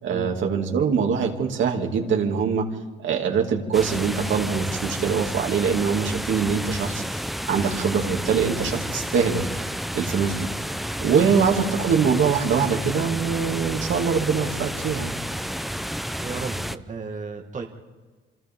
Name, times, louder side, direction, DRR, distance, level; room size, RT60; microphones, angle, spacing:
voice 1, 0.0-2.7 3.0-9.7 9.9-10.5 11.0-15.1, right 6 dB, 75° right, 1 dB, 2.6 m, -23 dB
sound 1, 3.7-16.8, equal, ahead, 0.7 m, -31 dB
voice 2, 16.2-17.7, right 4 dB, 40° right, 3 dB, 1.9 m, -34 dB
28.0 x 25.5 x 3.7 m, 1.4 s
cardioid pair, 90°, 20 cm